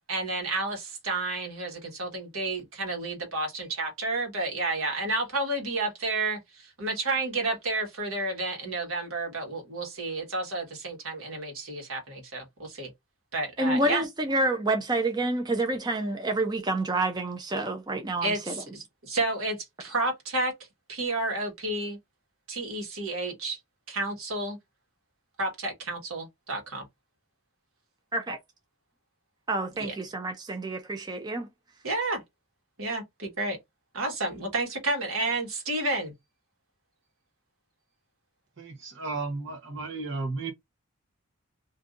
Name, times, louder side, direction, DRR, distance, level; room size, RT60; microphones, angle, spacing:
voice 1, 0.1-12.9 13.3-14.0 18.2-20.5 20.9-22.0 22.5-23.6 23.9-24.6 25.4-26.8 29.8-29.9 31.8-32.2 32.8-33.6 33.9-36.1, right 2 dB, 80° right, 1.4 m, -31 dB
voice 2, 13.6-18.5 28.1-28.4 29.5-31.5, right 2 dB, 20° right, 0.5 m, -28 dB
voice 3, 38.6-40.5, right 3 dB, 60° right, 0.9 m, -34 dB
2.6 x 2.5 x 3.7 m
head